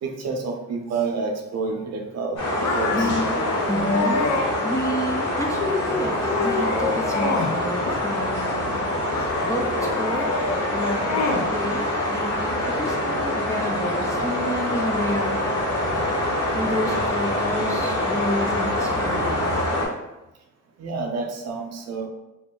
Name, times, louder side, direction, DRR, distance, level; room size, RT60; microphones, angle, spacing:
voice 1, 0.0-2.4 2.7-3.1 10.6-10.7 15.8-16.4 19.7-19.8 20.8-22.1, right 4 dB, 60° right, 3 dB, 0.6 m, -29 dB
sound 1, 2.4-19.9, left 1 dB, 85° left, 1.2 m, -25 dB
sound 2, 2.6-4.5 5.1-5.6 6.0-7.6 7.9-8.6 9.1-11.5, left 3 dB, 70° left, 0.5 m, -27 dB
voice 2, 2.9-3.3 3.7-4.3 4.6-8.8 9.4-10.4 10.7-15.4 16.5-19.6, left 1 dB, 10° left, -1 dB, 0.3 m, -30 dB
2.4 x 2.0 x 3.6 m, 0.96 s
cardioid pair, 90°, 30 cm